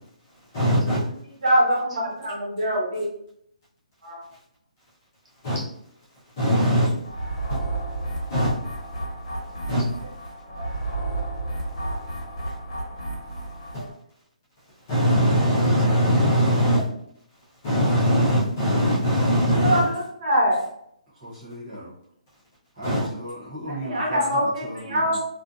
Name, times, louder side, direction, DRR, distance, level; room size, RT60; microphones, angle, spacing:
voice 1, 0.5-1.0 5.4-5.6 6.4-6.9 7.5-7.6 8.3-8.5 9.7-9.9 13.7-13.8 14.9-16.8 17.6-19.8 22.8-23.1, equal, 25° left, -9 dB, 0.8 m, -21 dB
voice 2, 1.4-3.1 4.0-4.2 10.5-10.7 19.5-20.6 23.7-25.2, equal, 60° right, -3 dB, 1.1 m, -24 dB
sound 1, 7.0-13.9, right 2 dB, 55° left, 1.0 m, -31 dB
voice 3, 21.1-21.9 22.7-25.2, right 1 dB, 10° right, -14 dB, 0.6 m, -36 dB
2.5 x 2.4 x 2.4 m, 0.71 s
hypercardioid pair, 180°, 4 cm